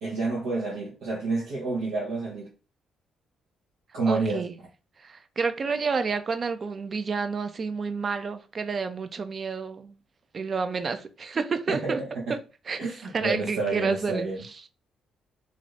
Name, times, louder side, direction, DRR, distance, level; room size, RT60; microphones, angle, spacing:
voice 1, 0.0-2.5 3.9-4.5 11.7-12.4 12.8-14.4, right 3 dB, 85° right, 0.9 m, -29 dB
voice 2, 4.1-4.5 5.0-10.0 10.3-12.0 12.3-12.4 12.7-12.9 13.1-14.3, right 5 dB, 40° right, 0.4 m, -29 dB
2.5 x 2.5 x 3.2 m
cardioid pair, 90°, 0 cm